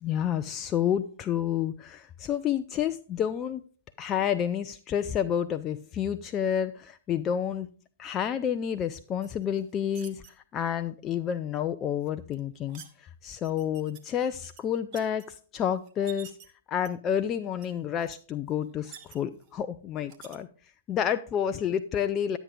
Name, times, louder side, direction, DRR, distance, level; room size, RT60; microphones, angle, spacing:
voice 1, 0.0-3.6 4.0-7.7 8.0-16.3 16.7-20.5 20.9-22.4, left 9 dB, 25° left, 9 dB, 0.5 m, -29 dB
sound 1, 9.2-10.3 12.0-12.9 13.4-14.0 14.4-15.2 15.8-16.5 16.8-17.2 17.6-17.7 18.0-18.2 18.5-19.5 20.1-20.4, right 8 dB, 40° right, 1.3 m, -49 dB
11.0 x 8.2 x 3.7 m, 0.41 s
hypercardioid pair, 115°, 0 cm